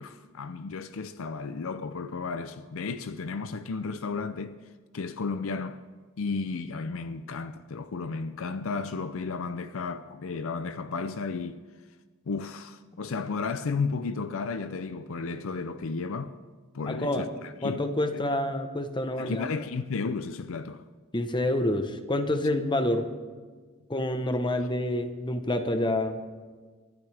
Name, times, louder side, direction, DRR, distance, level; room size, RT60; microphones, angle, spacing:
voice 1, 0.0-4.6 4.9-5.8 6.2-11.6 12.3-16.4 16.7-17.8 19.2-20.8, left 4 dB, 65° left, 0.5 m, -33 dB
voice 2, 16.9-17.3 17.6-19.5 21.1-23.1 23.9-26.2, left 1 dB, 20° left, 1.0 m, -28 dB
24.0 x 12.0 x 3.4 m
head